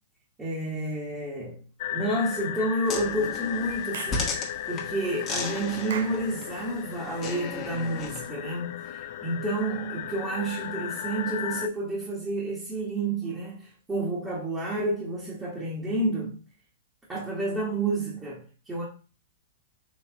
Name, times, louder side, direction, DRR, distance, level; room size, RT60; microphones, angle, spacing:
voice 1, 0.4-1.6 1.9-16.4 17.1-18.8, right 2 dB, 15° right, 1.3 m, -30 dB
sound 1, 1.8-11.7, left 10 dB, 55° left, 0.3 m, -36 dB
sound 2, 2.9-8.3, left 4 dB, 30° left, 1.1 m, -36 dB
Clapping / Chirp tweet, 3.9-4.3 5.9-6.2, right 8 dB, 70° right, 0.4 m, -37 dB
4.3 x 3.1 x 2.9 m
hypercardioid pair, 120°, 0 cm